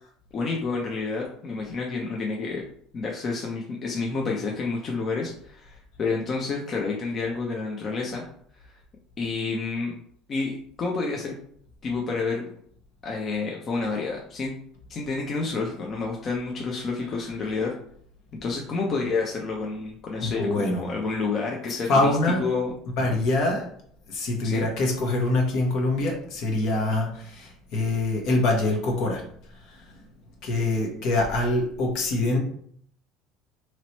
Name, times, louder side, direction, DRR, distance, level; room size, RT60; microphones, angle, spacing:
voice 1, 0.3-2.6 2.9-8.2 9.2-9.9 10.3-11.4 11.8-12.4 13.0-14.5 14.9-17.7 18.4-22.1 22.4-22.7 24.4-24.7, left 4 dB, 45° left, -1 dB, 0.7 m, -29 dB
voice 2, 20.2-20.8 21.9-22.4 23.0-23.7 24.1-29.2 29.7-29.8 30.4-32.4, left 2 dB, 65° left, 1 dB, 1.0 m, -24 dB
3.0 x 2.9 x 3.0 m, 0.62 s
hypercardioid pair, 85°, 0 cm